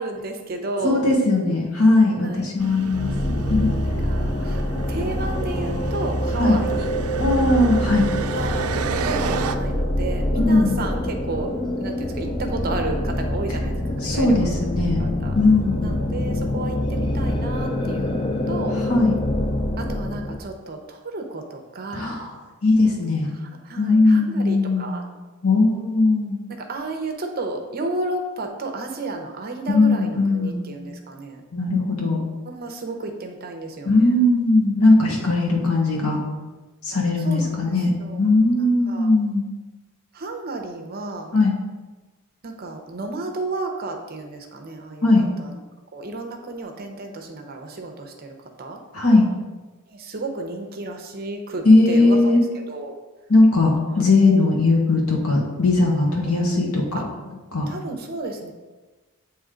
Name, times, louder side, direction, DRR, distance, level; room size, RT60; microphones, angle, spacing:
voice 1, 0.0-1.0 2.2-2.5 3.8-6.9 8.3-14.7 15.0-15.4 15.8-18.8 19.8-22.2 23.3-25.0 26.6-31.4 32.4-34.2 35.2-35.3 37.2-38.2 38.5-39.1 40.1-41.3 42.4-45.6 45.9-48.8 49.9-52.2 52.7-52.9 53.9-54.1 56.3-57.0 57.7-58.5, right 2 dB, 45° right, 4 dB, 0.7 m, -32 dB
voice 2, 0.8-3.7 6.4-6.6 7.2-8.1 10.4-10.8 14.0-15.0 15.3-15.9 18.9-19.1 21.9-22.3 22.6-23.3 23.8-25.0 25.4-26.4 29.7-30.7 31.5-32.2 33.8-36.2 36.8-37.9 38.2-39.4 41.3-41.5 45.0-45.2 48.9-49.2 51.6-52.4 53.3-57.0 57.5-57.7, left 2 dB, 75° left, -1 dB, 1.3 m, -19 dB
sound 1, 2.6-9.6, right 6 dB, 75° right, 0.4 m, -32 dB
sound 2, 2.9-20.4, left 1 dB, 20° left, 0.4 m, -25 dB
8.4 x 3.1 x 3.7 m, 1.2 s
head